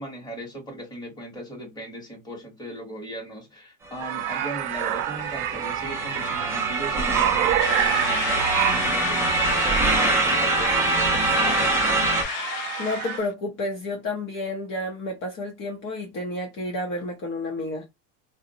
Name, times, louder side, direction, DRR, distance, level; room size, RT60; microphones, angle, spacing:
voice 1, 0.0-11.4, right 1 dB, 10° left, 1.0 m, -37 dB
sound 1, 4.0-13.2, right 12 dB, 75° right, 0.6 m, -29 dB
sound 2, 4.1-12.2, right 3 dB, 5° right, 0.4 m, -24 dB
sound 3, 7.6-13.3, left 11 dB, 90° left, 0.6 m, -31 dB
voice 2, 12.8-17.9, left 2 dB, 40° left, 0.7 m, -30 dB
3.8 x 2.1 x 2.7 m
supercardioid pair, 140°, 43 cm